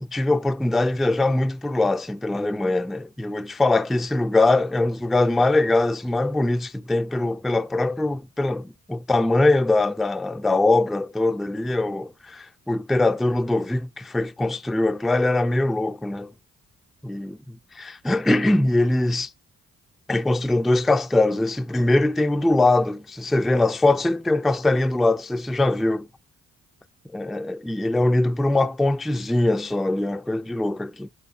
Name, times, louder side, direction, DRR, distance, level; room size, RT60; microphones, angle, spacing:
voice 1, 0.0-16.3 17.0-19.3 20.1-26.1 27.1-31.1, left 2 dB, ahead, 0.3 m, -22 dB
7.2 x 6.2 x 2.5 m
hypercardioid pair, 45°, 36 cm